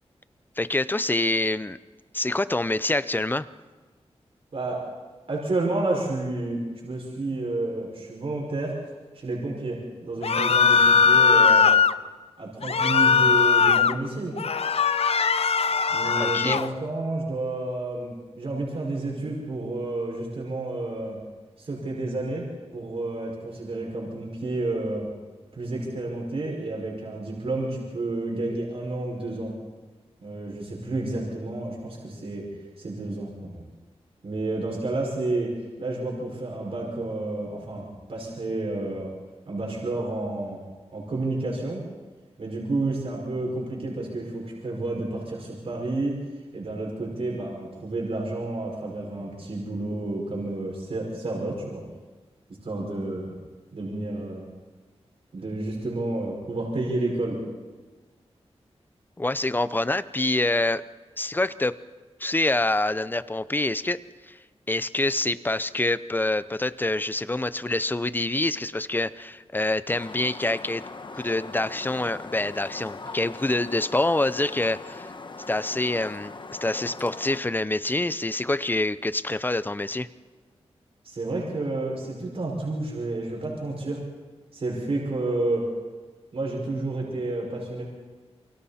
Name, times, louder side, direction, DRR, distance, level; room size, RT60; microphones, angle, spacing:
voice 1, 0.6-1.8 2.1-3.5 16.2-16.6 59.2-60.8 61.2-61.7 62.2-64.0 64.3-64.4 64.7-70.8 71.1-75.1 75.5-76.3 76.6-80.1, left 2 dB, 15° left, 15 dB, 0.6 m, -26 dB
voice 2, 5.3-8.8 9.1-11.7 12.4-14.4 15.9-21.2 21.6-22.5 22.7-25.1 25.6-29.5 30.2-33.6 34.2-35.5 35.8-39.1 39.5-40.6 40.9-41.8 42.4-46.2 46.5-51.9 52.6-53.4 53.7-54.5 55.3-57.4 81.0-84.0 84.5-85.6 86.3-87.8, right 2 dB, 60° right, -2 dB, 5.7 m, -30 dB
sound 1, 10.2-11.9 12.6-14.0 14.4-16.7, left 6 dB, 65° left, 0.6 m, -20 dB
sound 2, 69.9-77.4, left 3 dB, 45° left, 1.2 m, -40 dB
28.5 x 24.0 x 4.3 m, 1.4 s
wide cardioid pair, 115°, 11 cm